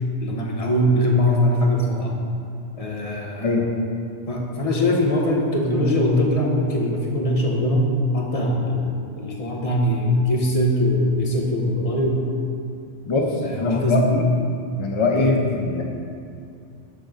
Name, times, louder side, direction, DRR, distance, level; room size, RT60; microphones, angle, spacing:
voice 1, 0.2-2.1 2.7-3.6 4.3-12.2 13.4-14.1 15.1-15.4, left 1 dB, 35° left, -1 dB, 0.9 m, -21 dB
voice 2, 13.0-14.3 14.8-15.8, left 2 dB, 50° left, 1 dB, 0.3 m, -22 dB
6.7 x 3.7 x 6.4 m, 2.4 s
omnidirectional pair, 1.2 m